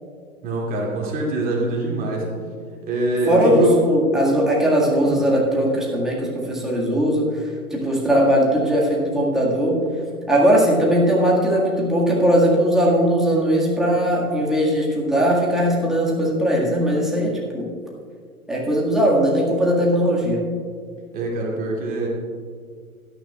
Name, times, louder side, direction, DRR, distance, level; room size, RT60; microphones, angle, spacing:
voice 1, 0.4-2.3 2.8-3.7 5.0-5.3 21.1-22.1, right 2 dB, 20° right, -3 dB, 2.5 m, -24 dB
voice 2, 3.3-9.8 10.3-17.7 18.5-20.4, equal, ahead, -5 dB, 1.8 m, -19 dB
17.0 x 13.0 x 2.4 m, 2.1 s
figure-of-eight pair, 120°, 44 cm